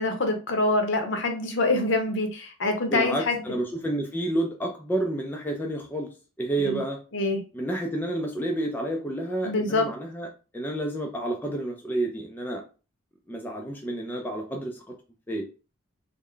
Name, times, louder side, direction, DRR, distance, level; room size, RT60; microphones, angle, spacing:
voice 1, 0.0-3.4 6.6-6.8 7.1-7.4 9.4-9.9, left 2 dB, 60° left, 4 dB, 0.7 m, -25 dB
voice 2, 2.9-6.1 6.4-7.0 7.5-10.3 10.5-12.6 13.3-14.9 15.3-15.4, right 1 dB, 10° left, 1 dB, 0.3 m, -30 dB
3.3 x 2.1 x 3.7 m, 0.34 s
head